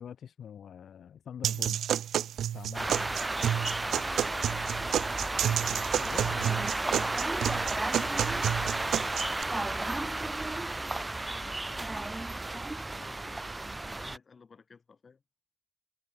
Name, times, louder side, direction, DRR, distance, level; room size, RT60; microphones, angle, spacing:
voice 1, 0.0-1.8 2.5-3.1 6.0-6.7, left 8 dB, 50° left, 3.9 m, -45 dB
sound 1, 1.4-9.4, right 10 dB, 65° right, 0.5 m, -30 dB
sound 2, 2.7-14.2, right 2 dB, 15° right, 0.4 m, -33 dB
voice 2, 3.8-5.9 8.0-15.2, left 5 dB, 30° left, 5.4 m, -54 dB
cardioid pair, 125°, 0 cm